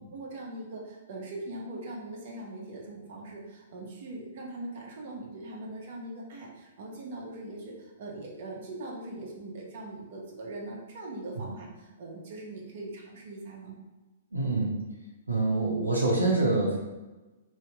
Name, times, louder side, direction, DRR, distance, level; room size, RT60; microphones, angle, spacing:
voice 1, 0.1-13.8, right 2 dB, 50° right, -2 dB, 0.9 m, -41 dB
voice 2, 14.3-14.8 15.3-16.8, right 2 dB, 85° right, -3 dB, 0.7 m, -26 dB
2.8 x 2.7 x 3.4 m, 1.1 s
figure-of-eight pair, 115°, 0 cm